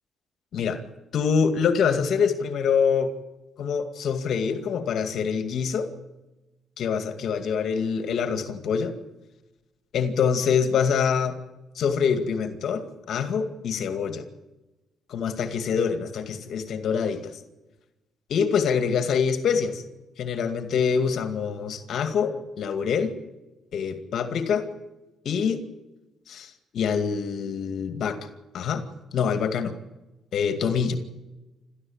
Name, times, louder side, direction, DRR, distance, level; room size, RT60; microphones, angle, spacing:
voice 1, 1.1-3.1 3.6-5.9 6.8-8.9 9.9-11.4 11.8-14.2 15.1-17.4 18.3-19.8 20.2-23.1 23.7-24.6 25.2-25.6 26.3-28.2 28.5-28.8 29.1-29.7 30.3-31.0, left 6 dB, 70° left, 8 dB, 2.3 m, -25 dB
28.5 x 14.0 x 8.9 m, 1.1 s
cardioid pair, 90°, 0 cm